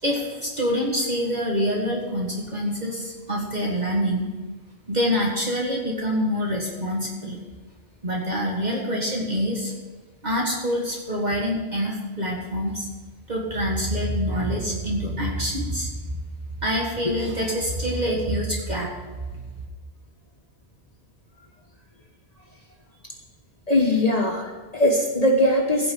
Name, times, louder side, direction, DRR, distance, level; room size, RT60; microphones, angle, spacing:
voice 1, 0.0-4.3 4.9-7.4 8.0-9.7 10.2-12.9 13.3-16.2 16.6-18.9, equal, 45° right, -2 dB, 1.9 m, -26 dB
voice 2, 23.7-25.9, left 1 dB, 40° left, 1 dB, 1.3 m, -21 dB
16.0 x 5.5 x 8.1 m, 1.4 s
omnidirectional pair, 1.0 m